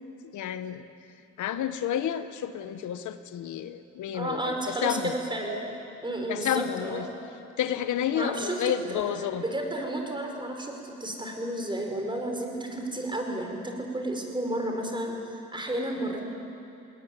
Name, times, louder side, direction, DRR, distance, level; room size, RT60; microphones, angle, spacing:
voice 1, 0.3-0.9 1.4-5.1 6.3-7.0 7.6-9.4 16.1-16.2, left 10 dB, 75° left, 11 dB, 1.0 m, -30 dB
voice 2, 4.1-7.0 8.1-9.0 9.4-16.2, right 1 dB, 15° right, 2 dB, 4.7 m, -32 dB
20.0 x 19.0 x 9.6 m, 2.9 s
cardioid pair, 90°, 30 cm